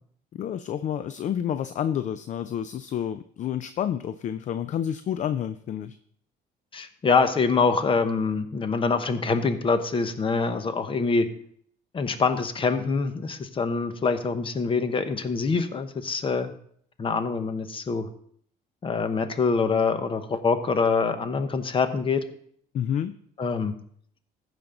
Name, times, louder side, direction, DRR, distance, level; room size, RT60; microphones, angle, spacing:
voice 1, 0.3-6.0 22.7-23.1, left 9 dB, 45° left, 13 dB, 0.4 m, -29 dB
voice 2, 6.7-11.3 11.9-16.5 17.0-18.1 18.8-22.2 23.4-23.7, left 4 dB, 30° left, 10 dB, 0.9 m, -25 dB
15.0 x 5.2 x 3.8 m, 0.62 s
cardioid pair, 110°, 17 cm